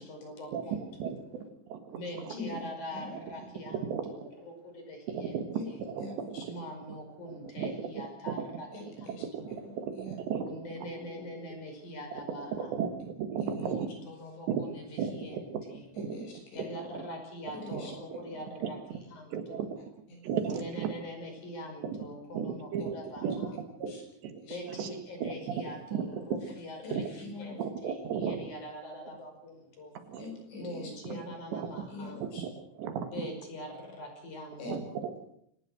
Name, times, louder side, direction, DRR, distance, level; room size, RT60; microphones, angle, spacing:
voice 1, 0.0-1.1 1.9-5.4 5.6-5.8 6.4-9.6 10.4-12.8 13.5-15.9 16.5-19.7 20.4-23.5 24.5-30.0 30.6-32.2 33.1-35.0, equal, 40° left, 3 dB, 6.7 m, -43 dB
voice 2, 1.0-2.0 2.3-2.4 3.9-4.1 5.1-6.5 7.6-7.7 8.3-8.4 9.3-9.4 9.8-10.5 12.6-13.9 14.5-14.6 15.0-16.2 17.7-17.8 18.6-18.7 19.3-19.7 20.2-20.9 21.8-22.0 22.3-23.0 23.2-23.4 23.8-23.9 24.2-24.4 24.8-24.9 25.2-25.6 25.9-26.1 26.9-27.0 27.6-28.4 30.1-30.2 31.5-31.7 32.4-32.5 32.8-33.3 34.7-35.1, right 7 dB, 70° right, 7 dB, 4.1 m, -34 dB
voice 3, 2.3-2.6 2.9-3.4 5.5-5.7 6.0-6.4 8.7-9.3 9.6-10.2 13.4-13.5 15.9-16.8 17.5-17.9 18.3-18.4 20.1-20.2 23.8-24.0 24.4-24.6 26.8-27.6 30.2-31.2 31.9-32.4 34.6-34.8, left 3 dB, 75° left, 2 dB, 9.3 m, -43 dB
25.0 x 18.5 x 6.4 m, 0.72 s
omnidirectional pair, 5.3 m